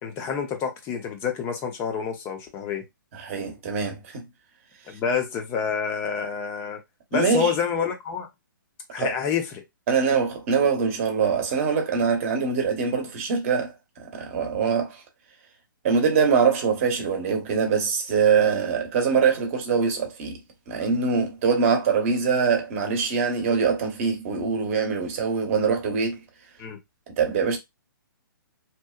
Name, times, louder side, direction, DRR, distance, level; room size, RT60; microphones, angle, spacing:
voice 1, 0.0-2.8 4.9-6.8 7.1-8.3 8.9-9.6 26.6-26.8, left 6 dB, 20° left, 0.5 m, -28 dB
voice 2, 3.1-4.2 7.1-7.5 9.0-9.1 9.9-13.7 14.1-15.0 15.8-20.4 20.7-26.2 27.2-27.6, right 5 dB, 40° right, 0.8 m, -23 dB
2.8 x 2.0 x 2.3 m
hypercardioid pair, 150°, 12 cm